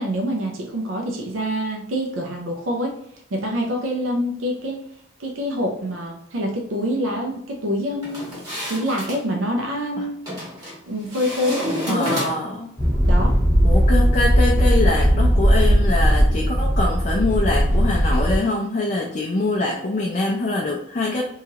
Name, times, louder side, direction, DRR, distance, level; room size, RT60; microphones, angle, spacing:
voice 1, 0.0-2.9 3.3-4.8 5.2-8.2 8.7-10.2 10.9-12.1 13.1-13.3, equal, 80° right, 0 dB, 0.5 m, -26 dB
sound 1, 8.0-9.2 10.3-10.8 11.1-12.6, equal, 20° right, 1.3 m, -30 dB
voice 2, 11.9-12.7 13.6-21.2, left 2 dB, 35° left, -1 dB, 0.4 m, -24 dB
sound 2, 12.8-18.4, equal, 15° left, 0.8 m, -17 dB
3.0 x 2.3 x 2.8 m, 0.71 s
head